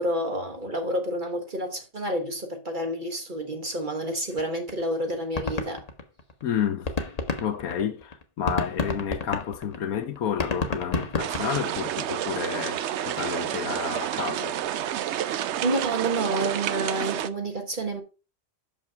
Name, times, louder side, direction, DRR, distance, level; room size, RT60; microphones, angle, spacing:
voice 1, 0.0-5.8 15.6-18.0, right 1 dB, 35° right, 1.4 m, -29 dB
sound 1, 4.4-4.5 4.7-4.8 5.1-6.4 6.7-12.0, left 3 dB, 30° left, 0.9 m, -30 dB
voice 2, 6.4-6.9 7.4-14.6, left 8 dB, 70° left, 1.2 m, -30 dB
sound 2, 11.2-17.3, right 10 dB, 70° right, 0.7 m, -29 dB
6.5 x 5.4 x 4.5 m
omnidirectional pair, 1.6 m